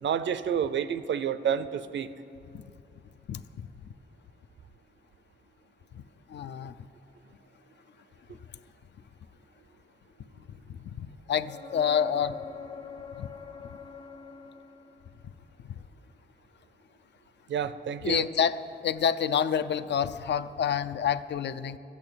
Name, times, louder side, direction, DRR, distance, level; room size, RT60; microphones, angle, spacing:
voice 1, 0.0-2.1 17.5-18.3, right 8 dB, 80° right, 14 dB, 0.5 m, -29 dB
voice 2, 3.3-3.7 5.9-6.0 6.3-6.7 10.6-12.4 13.2-13.3 18.0-18.6 18.8-21.8, left 8 dB, 70° left, 13 dB, 0.5 m, -28 dB
sound 1, 11.4-15.2 18.9-19.0, left 6 dB, 30° left, 0.8 m, -44 dB
13.5 x 8.2 x 8.9 m, 2.6 s
wide cardioid pair, 165°, 19 cm